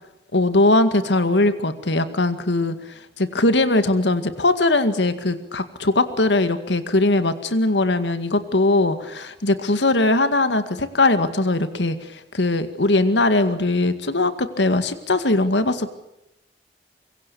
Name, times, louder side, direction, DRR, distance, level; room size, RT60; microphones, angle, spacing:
voice 1, 0.3-2.7 3.2-15.9, left 2 dB, 90° left, 10 dB, 2.1 m, -20 dB
25.5 x 23.5 x 7.1 m, 0.91 s
head